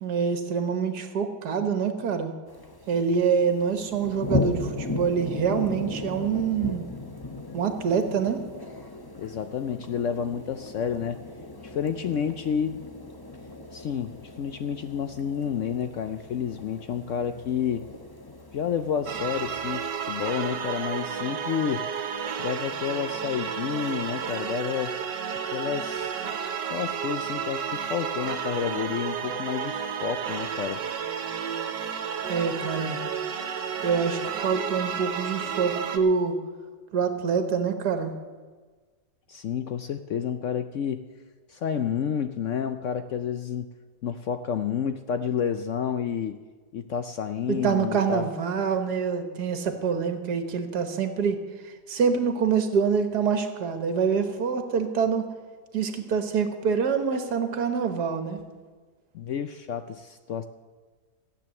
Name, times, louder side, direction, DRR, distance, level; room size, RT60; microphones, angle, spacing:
voice 1, 0.0-2.3 2.9-6.8 7.5-8.5 32.3-33.0 33.8-36.4 36.9-38.1 47.5-51.4 51.6-55.3 55.7-58.4, right 6 dB, 70° right, 8 dB, 1.9 m, -26 dB
sound 1, 2.5-19.8, left 2 dB, 15° left, 0.9 m, -37 dB
voice 2, 9.2-11.2 11.6-12.8 13.7-17.9 18.5-21.8 22.4-24.9 25.5-26.1 26.7-30.8 39.3-41.0 41.5-43.7 44.0-46.4 46.7-48.3 59.1-60.4, left 8 dB, 65° left, 9 dB, 0.7 m, -30 dB
sound 2, 19.1-36.0, right 7 dB, 90° right, 1.7 m, -32 dB
15.0 x 8.9 x 7.6 m, 1.4 s
omnidirectional pair, 1.8 m